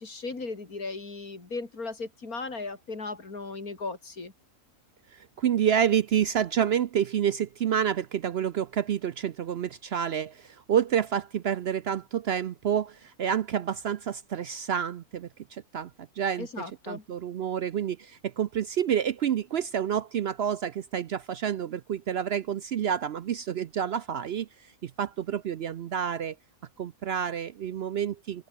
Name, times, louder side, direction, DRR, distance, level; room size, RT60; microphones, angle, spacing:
voice 1, 0.0-4.3 16.4-17.0, left 3 dB, 85° left, 4.1 m, -37 dB
voice 2, 5.1-15.9 16.2-16.5 16.9-26.4 26.8-28.5, right 9 dB, 60° right, 0.7 m, -29 dB
open air
omnidirectional pair, 1.5 m